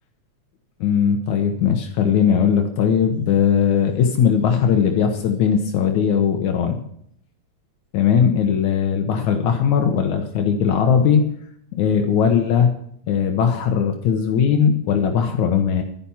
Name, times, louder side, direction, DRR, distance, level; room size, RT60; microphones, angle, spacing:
voice 1, 0.8-6.8 7.9-11.2 11.8-12.7 13.1-15.8, left 7 dB, 75° left, 4 dB, 2.5 m, -19 dB
12.0 x 10.0 x 5.6 m, 0.69 s
omnidirectional pair, 3.4 m